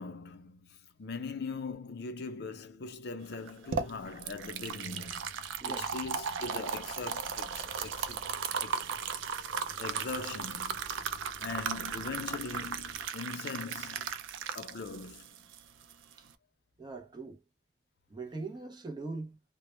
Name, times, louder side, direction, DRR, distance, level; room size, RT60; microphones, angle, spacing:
voice 1, 0.0-5.2 5.6-8.9 9.8-11.0 11.4-14.1 14.5-15.3, left 4 dB, 60° left, 0.5 m, -41 dB
sound 1, 3.3-16.3, right 6 dB, 90° right, 0.4 m, -36 dB
sound 2, 3.7-13.1, left 1 dB, 55° right, 0.9 m, -54 dB
voice 2, 5.6-5.9 9.1-9.3 16.8-17.4 18.1-19.4, right 3 dB, 20° right, 0.4 m, -41 dB
2.0 x 2.0 x 2.9 m
head